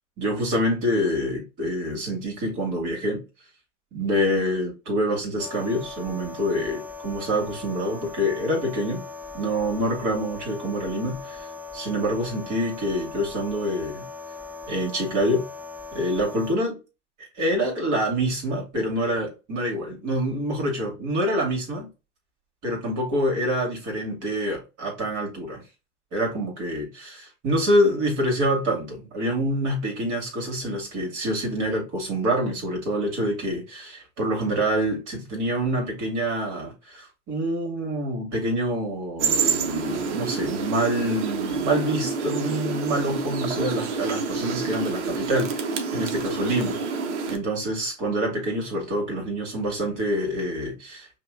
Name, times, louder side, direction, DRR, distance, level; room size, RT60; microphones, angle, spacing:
voice 1, 0.2-3.2 3.9-9.0 9.3-11.5 11.7-14.1 14.7-15.4 15.9-16.8 17.2-21.9 22.6-25.6 26.1-46.8 47.3-51.2, equal, 55° right, 2.2 m, -26 dB
sound 1, 5.4-16.5, left 4 dB, 5° right, 0.4 m, -39 dB
sound 2, 39.2-47.4, right 4 dB, 80° right, 0.9 m, -28 dB
5.7 x 2.4 x 2.3 m
hypercardioid pair, 85°, 36 cm